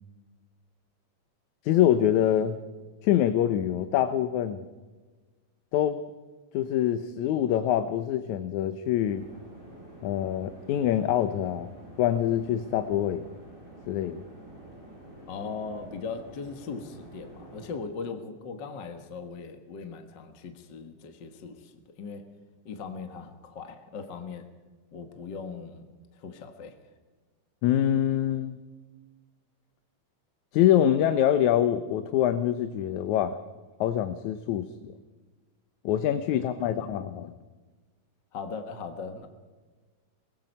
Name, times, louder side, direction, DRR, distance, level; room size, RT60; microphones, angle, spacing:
voice 1, 1.6-2.6 3.0-4.6 5.7-6.0 6.5-9.3 10.0-11.7 12.0-13.2 13.9-14.2 27.6-28.6 30.5-33.4 33.8-34.9 35.9-37.3, left 11 dB, 75° left, 11 dB, 2.2 m, -25 dB
sound 1, 9.1-17.8, right 1 dB, 15° right, 6.5 m, -48 dB
voice 2, 15.3-22.3 22.7-24.5 24.9-25.9 26.1-26.8 36.3-36.7 38.3-39.3, left 5 dB, 45° left, 7 dB, 1.7 m, -39 dB
24.0 x 20.5 x 5.5 m, 1.3 s
omnidirectional pair, 3.5 m